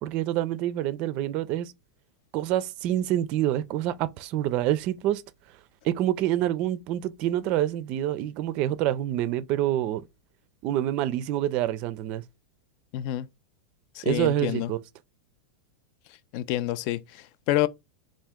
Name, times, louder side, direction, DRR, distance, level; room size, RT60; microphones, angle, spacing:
voice 1, 0.0-1.7 2.3-5.2 5.8-10.0 10.6-12.2 14.0-14.8, right 12 dB, 45° right, 0.4 m, -27 dB
voice 2, 12.9-13.3 14.0-14.7 16.3-17.7, left 14 dB, 50° left, 0.3 m, -28 dB
3.5 x 2.5 x 3.5 m
supercardioid pair, 135°, 3 cm